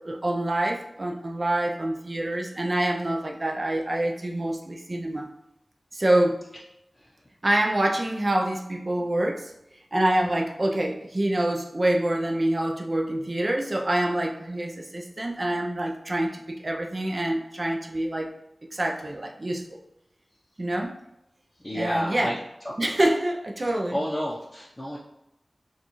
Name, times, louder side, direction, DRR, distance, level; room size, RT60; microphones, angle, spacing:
voice 1, 0.0-5.3 5.9-6.4 7.4-9.5 9.9-18.3 18.7-19.8 20.6-20.9 21.7-22.4 22.8-24.0, right 1 dB, 40° right, 0 dB, 0.4 m, -26 dB
voice 2, 21.6-22.3 22.7-22.8 23.9-25.0, equal, 20° left, -6 dB, 0.6 m, -29 dB
6.6 x 2.3 x 3.0 m, 0.86 s
wide cardioid pair, 85°, 0 cm